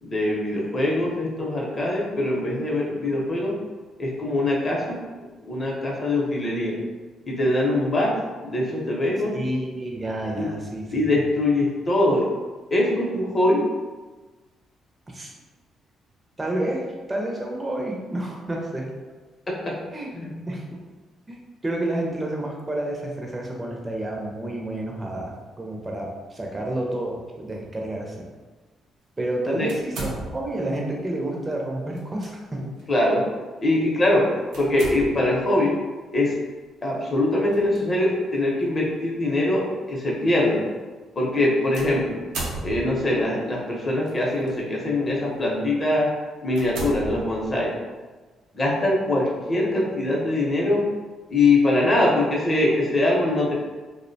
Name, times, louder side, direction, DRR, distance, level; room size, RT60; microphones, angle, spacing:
voice 1, 0.0-3.5 4.0-5.0 5.4-6.8 7.3-8.1 8.4-9.4 10.4-10.5 10.9-12.3 12.7-13.6 19.5-19.8 20.1-20.3 29.5-29.7 32.6-33.2 33.6-34.3 34.6-35.7 36.1-36.3 36.8-40.7 41.2-42.2 42.6-46.1 46.4-47.7 48.5-50.8 51.3-53.5, left 1 dB, 30° left, -3 dB, 0.7 m, -22 dB
voice 2, 9.3-11.1 15.1-15.3 16.4-18.9 19.9-20.6 21.3-28.3 29.2-32.6, right 1 dB, 25° right, -1 dB, 0.5 m, -30 dB
sound 1, 29.7-30.7 31.9-32.3 32.8-32.9 34.5-35.4 37.5-37.8 38.6-38.7 41.7-43.2 44.1-44.5 45.1-45.3 45.8-45.9 46.5-47.7, right 2 dB, 85° right, 0.6 m, -35 dB
2.5 x 2.1 x 2.6 m, 1.3 s
cardioid pair, 90°, 0 cm